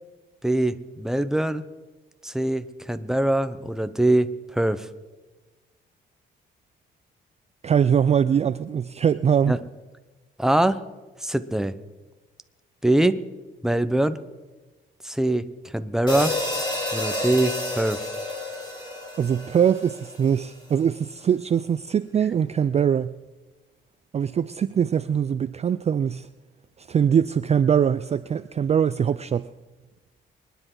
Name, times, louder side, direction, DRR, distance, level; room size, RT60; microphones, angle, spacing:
voice 1, 0.4-1.6 2.2-4.9 9.5-9.6 10.4-10.8 11.2-11.7 12.8-13.2 13.6-14.2 15.0-15.4 15.7-16.3 16.9-18.0, right 1 dB, ahead, 0.8 m, -23 dB
voice 2, 7.6-9.6 19.2-23.2 24.1-26.3 26.8-29.5, right 8 dB, 35° right, 0.4 m, -22 dB
sound 1, 16.1-20.4, left 1 dB, 20° left, 3.8 m, -30 dB
25.0 x 10.0 x 3.9 m
cardioid pair, 90°, 20 cm